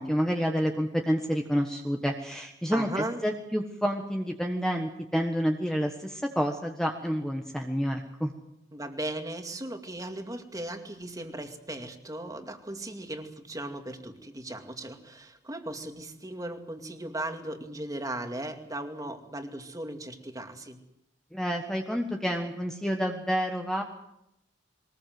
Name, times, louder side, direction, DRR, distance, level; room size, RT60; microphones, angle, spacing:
voice 1, 0.0-8.3 21.3-23.8, equal, 5° left, 2 dB, 1.4 m, -29 dB
voice 2, 2.7-3.2 8.7-20.8, right 1 dB, 20° right, 5 dB, 2.3 m, -37 dB
22.5 x 20.0 x 7.8 m, 0.81 s
head